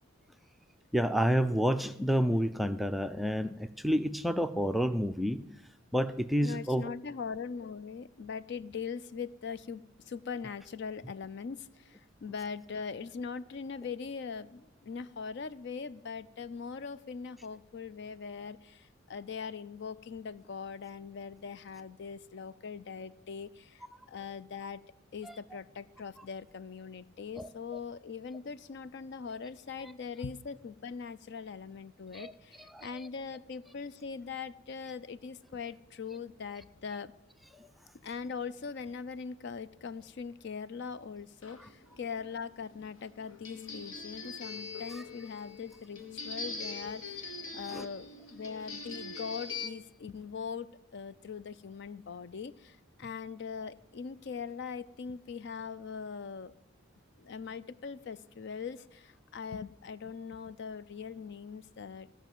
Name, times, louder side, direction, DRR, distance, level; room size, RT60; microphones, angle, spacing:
voice 1, 0.9-5.4 5.9-6.9 25.2-25.3 27.4-27.5 29.8-29.9 32.1-32.3 32.7-32.9 37.5-37.7 47.7-47.9, equal, ahead, 9 dB, 0.4 m, -29 dB
voice 2, 6.4-24.8 25.1-37.1 38.0-47.3 47.5-56.5 57.2-62.1, left 5 dB, 60° left, 15 dB, 0.4 m, -41 dB
sound 1, 41.4-49.7, left 4 dB, 75° left, 1.3 m, -43 dB
14.0 x 5.8 x 9.1 m, 0.90 s
head